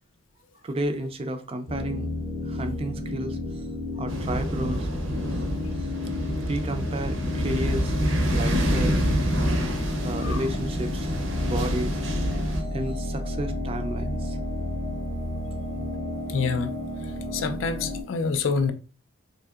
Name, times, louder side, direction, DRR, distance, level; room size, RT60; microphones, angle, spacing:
voice 1, 0.6-2.1 2.4-3.4 4.0-4.9 6.5-8.0 8.3-9.1 10.0-11.1 11.4-12.0 12.7-14.4, right 1 dB, 30° right, 0.4 m, -32 dB
sound 1, 1.7-18.0, left 2 dB, 15° left, 0.7 m, -32 dB
sound 2, 4.1-12.6, equal, 80° right, 0.7 m, -27 dB
voice 2, 10.0-10.4 16.3-16.7 17.3-18.7, left 5 dB, 75° left, 0.4 m, -27 dB
3.6 x 2.7 x 2.3 m
head